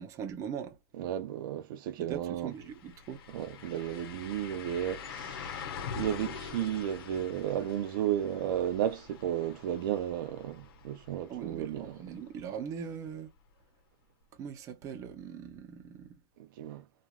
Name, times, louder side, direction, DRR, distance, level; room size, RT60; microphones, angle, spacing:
voice 1, 0.0-0.8 2.1-3.2 11.3-13.3 14.3-16.1, right 7 dB, 25° right, 0.7 m, -40 dB
voice 2, 0.9-2.6 3.3-5.7 6.0-12.1 16.6-16.8, right 10 dB, 60° right, 0.5 m, -33 dB
sound 1, 2.1-2.2 2.5-12.3 12.7-12.8 15.5-15.6, left 6 dB, 80° left, 1.0 m, -44 dB
3.0 x 2.4 x 2.3 m
supercardioid pair, 155°, 12 cm